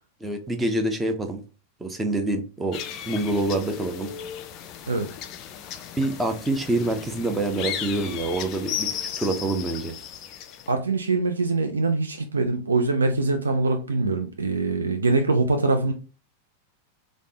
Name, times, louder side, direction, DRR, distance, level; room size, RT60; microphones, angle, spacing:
voice 1, 0.2-1.4 1.8-2.8 3.1-4.1 6.0-8.9 9.2-9.9, right 2 dB, 10° right, 0.5 m, -26 dB
sound 1, 2.7-10.7, left 9 dB, 40° left, 0.3 m, -35 dB
voice 2, 10.7-15.9, right 3 dB, 75° right, 0.3 m, -23 dB
3.3 x 2.0 x 2.7 m
figure-of-eight pair, 90°, 0 cm